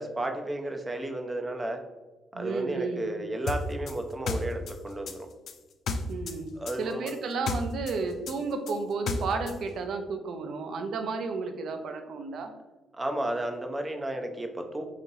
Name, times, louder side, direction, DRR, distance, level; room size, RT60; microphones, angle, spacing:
voice 1, 0.0-1.8 2.3-5.3 6.6-7.1 12.9-14.9, right 1 dB, 20° right, 4 dB, 0.5 m, -33 dB
voice 2, 2.3-3.1 6.1-6.5 6.8-12.5, right 4 dB, 65° right, 6 dB, 0.5 m, -32 dB
sound 1, 3.5-6.4 6.7-9.6, left 4 dB, 65° left, 0.4 m, -33 dB
4.0 x 2.8 x 2.7 m, 1.2 s
cardioid pair, 90°, 0 cm